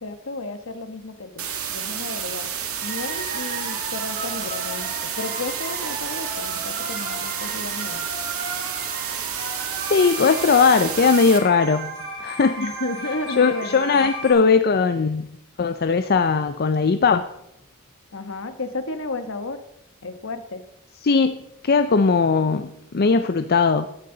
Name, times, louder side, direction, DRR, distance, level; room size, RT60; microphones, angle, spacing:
voice 1, 0.0-2.5 2.8-8.1 12.6-14.1 18.1-19.6 20.0-20.6, left 2 dB, 65° left, 10 dB, 1.3 m, -33 dB
sound 1, 1.4-11.4, right 8 dB, 75° right, 2.1 m, -30 dB
sound 2, 2.8-14.3, right 2 dB, 55° right, 6.7 m, -35 dB
voice 2, 9.8-12.6 13.4-15.3 15.6-17.3 21.0-23.9, left 5 dB, 45° left, 10 dB, 0.5 m, -19 dB
16.0 x 12.0 x 3.9 m, 0.82 s
head